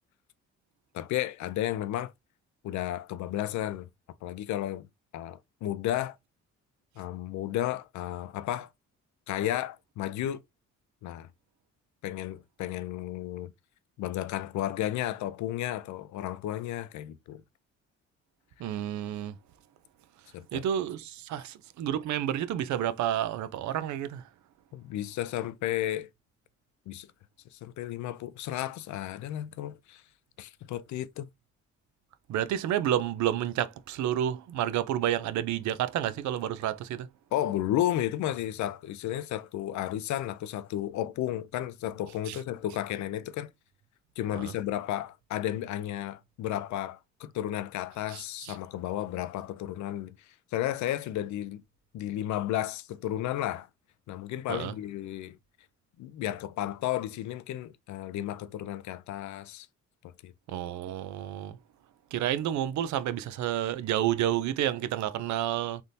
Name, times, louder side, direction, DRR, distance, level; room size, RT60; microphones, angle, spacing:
voice 1, 0.9-2.1 2.6-3.9 4.2-4.9 5.1-6.2 7.0-8.7 9.3-10.4 11.0-11.3 12.0-13.5 14.0-17.4 20.3-20.6 24.7-26.1 26.9-27.1 27.5-30.0 30.4-31.3 37.3-43.5 44.2-51.6 51.9-53.7 54.1-55.4 56.0-59.7 60.0-60.3, left 13 dB, 70° left, 0.4 m, -33 dB
voice 2, 18.6-19.4 20.5-24.2 32.3-37.1 42.3-42.4 44.4-44.5 48.1-48.5 54.5-54.7 60.5-61.6 62.1-65.8, right 11 dB, 70° right, 0.5 m, -30 dB
3.4 x 2.7 x 2.6 m
cardioid pair, 90°, 30 cm